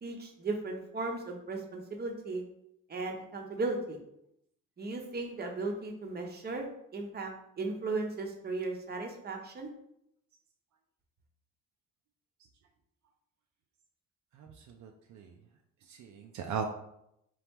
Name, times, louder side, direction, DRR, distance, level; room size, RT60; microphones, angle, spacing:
voice 1, 0.0-2.4 2.9-4.0 4.8-9.7, right 3 dB, 35° right, 2 dB, 0.8 m, -36 dB
voice 2, 14.3-15.3 15.9-16.6, right 7 dB, 70° right, 3 dB, 0.5 m, -39 dB
3.7 x 3.0 x 3.5 m, 0.78 s
cardioid pair, 90°, 30 cm